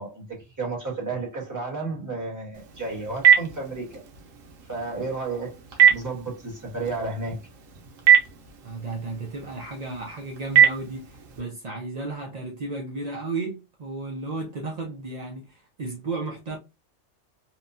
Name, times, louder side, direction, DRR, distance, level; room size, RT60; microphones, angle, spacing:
voice 1, 0.0-4.0 4.7-7.4, right 3 dB, 15° right, 1.1 m, -32 dB
Telephone, 2.5-11.4, right 8 dB, 90° right, 1.1 m, -24 dB
voice 2, 8.6-16.6, right 3 dB, 55° right, 0.4 m, -34 dB
2.9 x 2.2 x 2.5 m
omnidirectional pair, 1.3 m